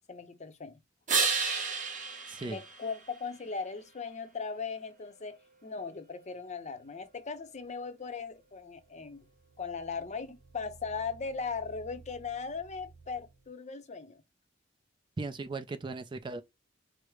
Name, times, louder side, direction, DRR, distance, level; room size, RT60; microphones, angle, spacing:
voice 1, 0.1-0.8 2.4-9.2 9.6-14.2, left 5 dB, 40° left, 0.6 m, -38 dB
sound 1, 1.1-3.6 9.4-13.4, right 5 dB, 40° right, 1.2 m, -36 dB
voice 2, 2.3-2.6 15.2-16.4, right 3 dB, 25° right, 0.4 m, -37 dB
4.6 x 2.0 x 4.6 m
head